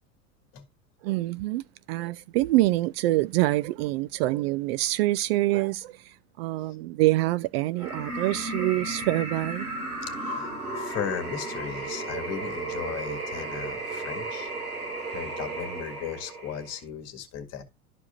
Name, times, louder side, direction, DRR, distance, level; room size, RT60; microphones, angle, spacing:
voice 1, 1.0-9.7, right 17 dB, 45° right, 0.4 m, -26 dB
sound 1, 7.8-16.8, right 2 dB, 85° right, 2.8 m, -34 dB
voice 2, 10.1-14.5 15.1-17.6, left 8 dB, 35° left, 2.0 m, -36 dB
12.5 x 4.8 x 2.6 m
figure-of-eight pair, 85°, 43 cm